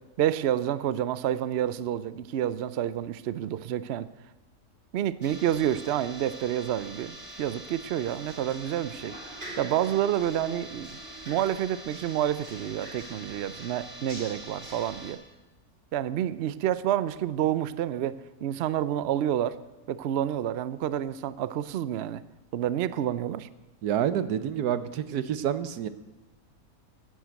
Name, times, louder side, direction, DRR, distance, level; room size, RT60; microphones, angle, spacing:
voice 1, 0.2-4.1 4.9-9.2 9.6-11.0 11.3-15.2 15.9-19.6 19.9-22.2 22.5-23.5, right 11 dB, 65° right, 16 dB, 0.6 m, -29 dB
sound 1, 5.2-15.1, right 1 dB, 40° right, 4.7 m, -43 dB
voice 2, 23.8-25.9, right 9 dB, 90° right, 13 dB, 1.3 m, -28 dB
11.0 x 10.0 x 8.2 m, 1.1 s
omnidirectional pair, 1.6 m